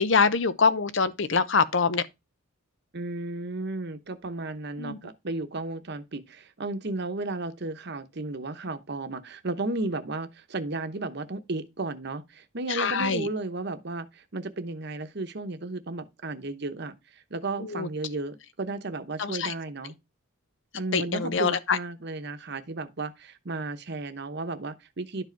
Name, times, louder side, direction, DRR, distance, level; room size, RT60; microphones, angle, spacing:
voice 1, 0.0-2.0 4.8-5.0 12.7-13.3 17.7-17.9 19.2-19.5 20.9-21.8, left 5 dB, 60° left, 0.7 m, -24 dB
voice 2, 2.9-20.0 20.7-25.2, right 2 dB, 50° right, 0.9 m, -34 dB
11.5 x 4.9 x 4.6 m
head